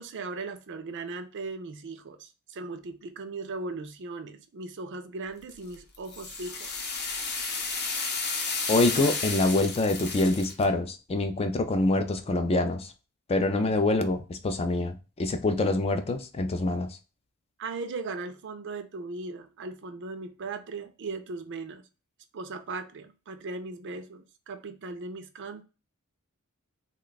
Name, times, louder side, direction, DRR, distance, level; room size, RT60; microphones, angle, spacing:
voice 1, 0.0-6.9 17.6-21.8 22.3-25.6, right 3 dB, 55° right, 0.4 m, -38 dB
sound 1, 5.5-10.6, left 4 dB, 45° left, 0.7 m, -32 dB
voice 2, 8.7-12.9 13.3-17.0, left 2 dB, 25° left, 0.3 m, -25 dB
3.1 x 2.2 x 3.9 m
head